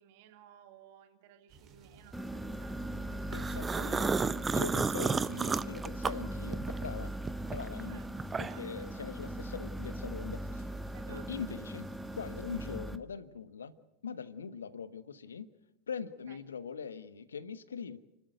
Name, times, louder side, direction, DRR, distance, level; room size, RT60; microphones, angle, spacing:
voice 1, 0.0-4.3 4.7-5.1 6.0-6.2 7.9-9.1 10.9-11.5 14.5-14.6 16.3-16.4, right 10 dB, 55° right, 7 dB, 2.1 m, -58 dB
sound 1, 1.5-12.8, right 5 dB, 35° right, 4.0 m, -58 dB
sound 2, 2.1-13.0, right 1 dB, 5° right, 1.4 m, -39 dB
voice 2, 3.3-7.1 7.5-8.0 8.4-10.7 11.1-11.9 12.2-13.7 14.0-15.5 15.9-18.0, left 6 dB, 80° left, 14 dB, 1.3 m, -42 dB
sound 3, 3.3-6.9 7.2-8.7, right 5 dB, 20° right, 0.7 m, -32 dB
29.5 x 13.0 x 8.1 m, 0.95 s
figure-of-eight pair, 90°, 0 cm